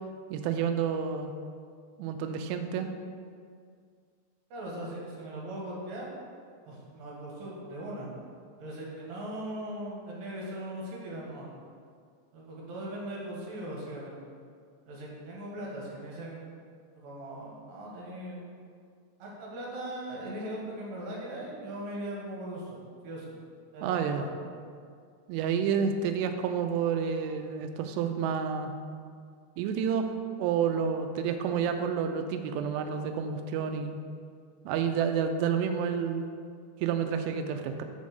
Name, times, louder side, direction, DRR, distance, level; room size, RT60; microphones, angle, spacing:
voice 1, 0.3-1.3 2.0-2.9 23.8-24.2 25.3-28.7 29.6-30.1 30.4-34.0 34.7-36.3 36.8-37.8, right 7 dB, 85° right, 7 dB, 2.7 m, -29 dB
voice 2, 4.5-6.1 6.7-8.1 8.6-11.5 12.3-14.2 14.9-16.4 17.0-18.4 19.2-22.8 23.0-23.4 23.7-24.3, right 1 dB, 65° right, -4 dB, 2.6 m, -39 dB
5.8 x 5.3 x 6.4 m, 2.2 s
omnidirectional pair, 4.9 m